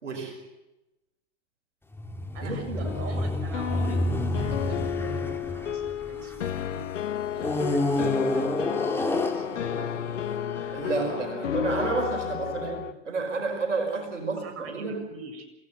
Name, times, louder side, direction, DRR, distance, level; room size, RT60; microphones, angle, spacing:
voice 1, 0.0-0.4 2.4-2.9 10.7-12.8 13.1-15.1, right 3 dB, 90° right, 3 dB, 5.0 m, -30 dB
sound 1, 1.9-6.6 7.4-10.8, left 2 dB, 5° left, 3.0 m, -29 dB
voice 2, 2.3-6.9 7.3-9.0 9.2-11.6 12.6-12.9 14.0-15.5, right 3 dB, 40° right, 5 dB, 7.7 m, -43 dB
sound 2, 2.8-12.9, left 10 dB, 85° left, 0.8 m, -32 dB
27.5 x 17.5 x 8.1 m, 0.99 s
hypercardioid pair, 95°, 36 cm